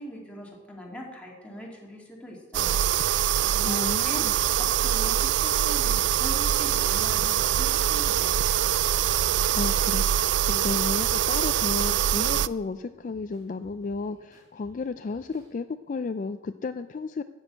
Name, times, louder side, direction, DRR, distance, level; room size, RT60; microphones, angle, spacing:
voice 1, 0.0-2.8 3.0-8.4, equal, 5° left, -2 dB, 2.3 m, -41 dB
sound 1, 2.5-12.5, right 11 dB, 65° right, 0.3 m, -24 dB
voice 2, 3.6-4.3 9.5-17.2, left 4 dB, 40° left, 10 dB, 0.3 m, -33 dB
sound 2, 12.6-15.5, equal, 20° right, 2.9 m, -58 dB
13.0 x 6.4 x 8.7 m, 1.3 s
head